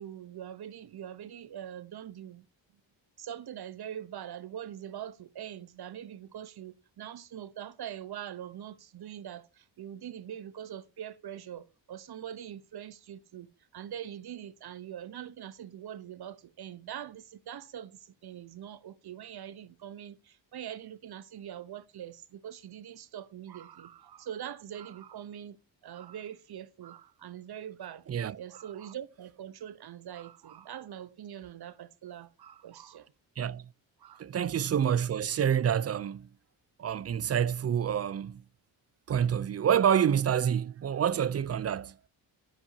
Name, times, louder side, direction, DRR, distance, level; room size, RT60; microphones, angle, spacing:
voice 1, 0.0-2.5 3.2-13.5 13.7-25.6 25.8-28.0 28.3-33.1 34.0-34.2, right 10 dB, 55° right, 0.8 m, -43 dB
voice 2, 34.2-36.3 36.8-38.4 39.1-42.0, right 8 dB, 35° right, 0.4 m, -27 dB
9.9 x 7.1 x 2.7 m
cardioid pair, 70°, 45 cm